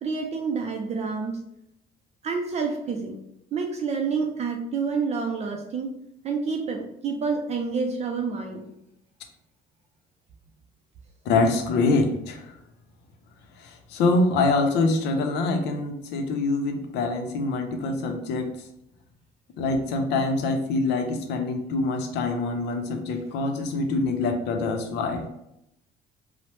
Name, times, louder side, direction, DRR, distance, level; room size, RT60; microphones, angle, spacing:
voice 1, 0.0-1.3 2.2-3.1 3.5-5.9 6.2-8.6, right 5 dB, 40° right, 2 dB, 0.4 m, -28 dB
voice 2, 11.3-12.5 13.6-18.5 19.6-25.3, left 3 dB, 80° left, 4 dB, 0.5 m, -25 dB
3.0 x 2.0 x 3.0 m, 0.81 s
cardioid pair, 110°, 17 cm